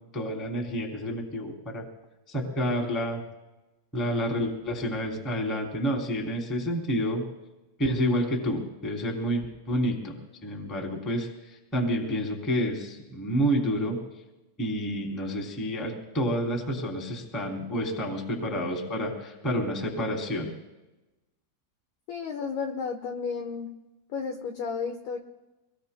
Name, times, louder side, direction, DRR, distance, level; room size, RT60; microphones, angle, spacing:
voice 1, 0.1-1.8 2.3-3.2 3.9-7.2 7.8-10.2 10.4-14.0 14.6-20.5, equal, ahead, -1 dB, 0.8 m, -29 dB
voice 2, 22.1-23.7 24.1-25.2, left 5 dB, 80° left, 3 dB, 2.3 m, -32 dB
26.0 x 21.5 x 2.2 m, 1.0 s
omnidirectional pair, 5.9 m